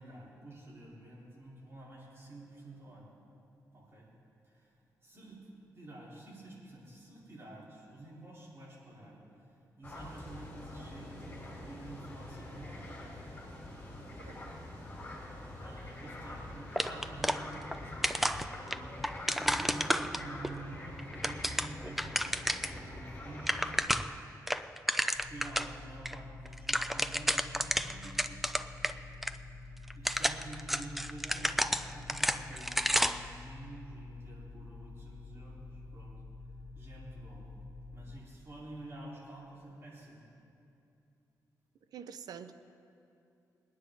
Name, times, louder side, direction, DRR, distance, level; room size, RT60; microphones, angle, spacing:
voice 1, 0.0-3.1 3.7-4.1 4.4-5.5 5.7-12.9 14.0-14.3 15.5-18.1 18.5-24.2 25.3-29.1 29.5-29.6 29.9-36.1 36.7-37.5 37.9-40.2, right 1 dB, 40° right, -6 dB, 4.0 m, -49 dB
sound 1, 9.8-23.8, left 1 dB, 30° left, 3.5 m, -45 dB
sound 2, 16.8-17.8 18.0-20.5 21.0-22.8 23.1-23.2 23.4-24.2 24.5-25.7 26.0-26.1 26.4-28.9 29.2-29.3 29.9-33.3, equal, 5° right, 0.4 m, -31 dB
sound 3, 25.1-38.2, left 2 dB, 45° left, 0.8 m, -48 dB
voice 2, 41.9-42.5, right 7 dB, 80° right, 11 dB, 0.6 m, -45 dB
22.0 x 9.9 x 3.9 m, 2.7 s
wide cardioid pair, 125°, 7 cm